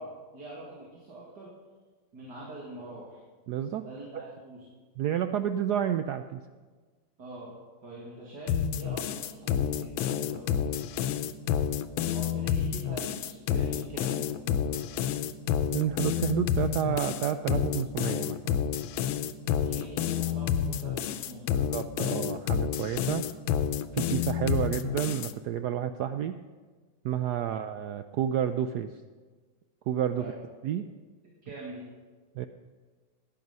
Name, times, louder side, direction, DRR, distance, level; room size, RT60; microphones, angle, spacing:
voice 1, 0.0-1.5 2.1-3.2 3.8-4.7 7.2-7.5 7.8-10.8 12.1-14.8 19.6-21.5 30.1-30.3 31.4-31.8, right 1 dB, 60° right, -5 dB, 2.8 m, -44 dB
voice 2, 3.5-3.9 4.1-4.2 5.0-6.4 15.7-18.6 21.5-23.2 23.9-26.4 27.0-28.9 29.9-30.2 30.6-30.8 32.4-32.5, right 10 dB, 75° right, 9 dB, 0.9 m, -30 dB
sound 1, 8.5-25.3, left 9 dB, 90° left, 1.4 m, -29 dB
17.0 x 10.5 x 5.4 m, 1.4 s
omnidirectional pair, 2.1 m